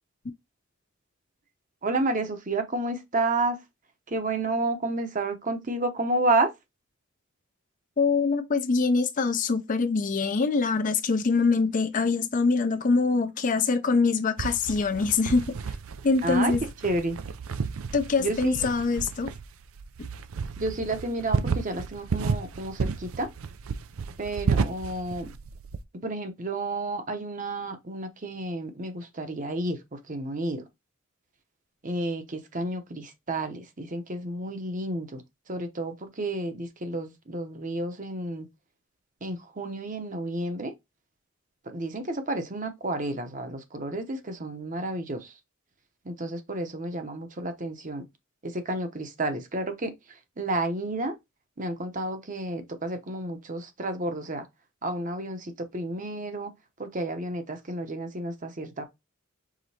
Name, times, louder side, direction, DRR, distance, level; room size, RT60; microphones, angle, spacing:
voice 1, 1.8-3.6 4.1-6.5 16.2-16.5 16.8-17.2 18.2-18.7 20.6-23.3 24.2-25.3 26.0-30.6 31.8-35.2 35.5-38.5 39.2-40.7 41.7-45.3 46.0-48.0 48.4-51.1 51.6-54.5 54.8-56.5 56.8-58.8, right 2 dB, 40° right, 0.8 m, -31 dB
voice 2, 8.0-15.5 16.0-16.6 17.9-19.3 20.0-20.1, left 4 dB, 40° left, 0.5 m, -24 dB
sound 1, 14.4-25.8, right 5 dB, 80° right, 0.5 m, -32 dB
5.0 x 3.8 x 2.8 m
head